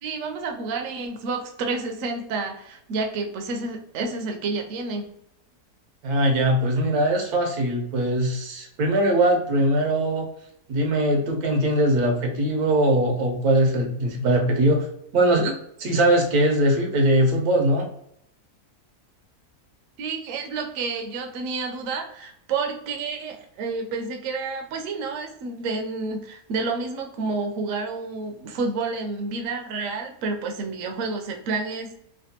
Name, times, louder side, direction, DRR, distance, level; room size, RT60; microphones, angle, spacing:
voice 1, 0.0-5.2 20.0-31.9, right 3 dB, 65° right, 3 dB, 0.9 m, -30 dB
voice 2, 6.0-10.3 10.7-14.9 15.1-17.9, right 1 dB, 85° right, 1 dB, 1.3 m, -21 dB
3.3 x 2.2 x 2.7 m, 0.72 s
omnidirectional pair, 1.6 m